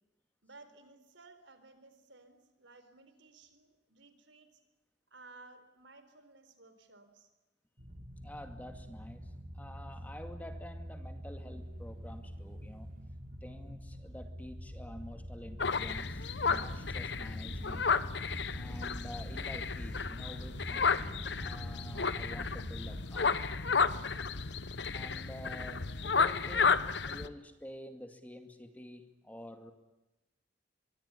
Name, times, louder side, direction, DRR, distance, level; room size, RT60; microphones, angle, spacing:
voice 1, 0.4-4.5 5.1-7.3, right 3 dB, 85° right, 10 dB, 4.3 m, -57 dB
sound 1, 7.8-23.0, equal, 45° right, 3.5 m, -45 dB
voice 2, 8.2-12.9 13.4-17.9 18.5-23.7 24.9-29.7, equal, 10° left, 6 dB, 2.3 m, -49 dB
sound 2, 15.6-27.3, left 5 dB, 70° left, 1.2 m, -32 dB
24.5 x 23.5 x 9.9 m, 1.0 s
head